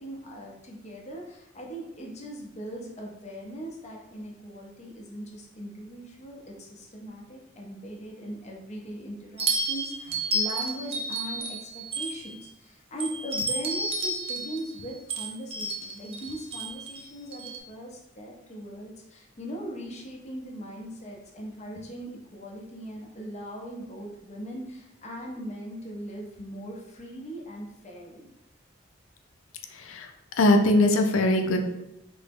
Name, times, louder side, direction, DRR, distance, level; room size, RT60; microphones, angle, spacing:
voice 1, 0.0-28.3, right 1 dB, 35° left, -1 dB, 0.6 m, -39 dB
sound 1, 9.4-12.5 13.0-17.6, right 2 dB, 30° right, 0.3 m, -31 dB
voice 2, 29.7-30.1 30.4-31.6, left 1 dB, 85° left, 5 dB, 0.4 m, -21 dB
3.4 x 2.0 x 3.4 m, 0.87 s
head